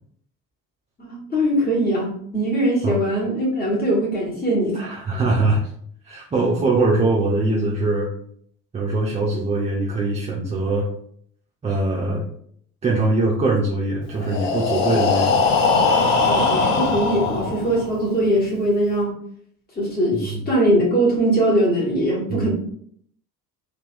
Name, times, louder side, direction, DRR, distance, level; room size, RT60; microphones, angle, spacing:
voice 1, 1.0-4.9 16.2-19.2 19.7-22.5, right 1 dB, 20° left, -5 dB, 1.4 m, -21 dB
voice 2, 4.7-5.6 6.0-8.1 8.7-10.9 11.6-12.3 12.8-15.4 20.1-20.4 22.3-22.5, right 2 dB, 15° right, -4 dB, 0.4 m, -22 dB
Breathing, 14.2-18.0, left 4 dB, 55° left, 0.8 m, -20 dB
2.9 x 2.5 x 3.5 m, 0.65 s
figure-of-eight pair, 55°, 48 cm